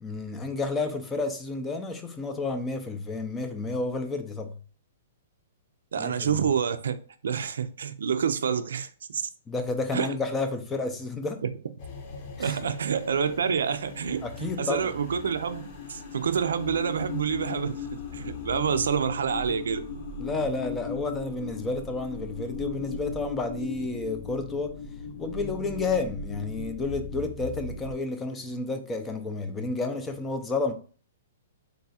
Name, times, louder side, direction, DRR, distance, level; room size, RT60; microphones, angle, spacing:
voice 1, 0.0-4.6 6.0-6.4 9.5-11.4 12.4-12.7 14.2-14.9 20.2-24.8 25.2-30.7, left 3 dB, 10° left, 0.4 m, -31 dB
voice 2, 5.9-7.0 7.2-9.2 9.9-10.1 12.4-17.9 18.1-19.8, right 7 dB, 90° right, 0.4 m, -28 dB
sound 1, 11.8-27.9, left 5 dB, 40° left, 0.8 m, -38 dB
3.9 x 2.4 x 4.1 m
hypercardioid pair, 160°, 0 cm